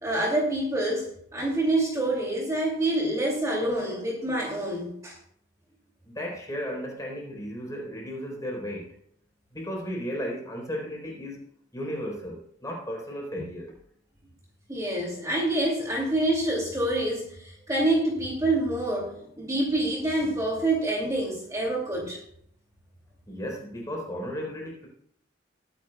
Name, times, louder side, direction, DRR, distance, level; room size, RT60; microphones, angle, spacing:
voice 1, 0.0-5.2 14.7-22.2, right 1 dB, 15° right, -3 dB, 2.5 m, -27 dB
voice 2, 6.1-8.9 9.5-11.4 11.7-13.7 23.3-24.9, equal, 15° left, -1 dB, 3.9 m, -34 dB
21.0 x 10.0 x 2.3 m, 0.68 s
head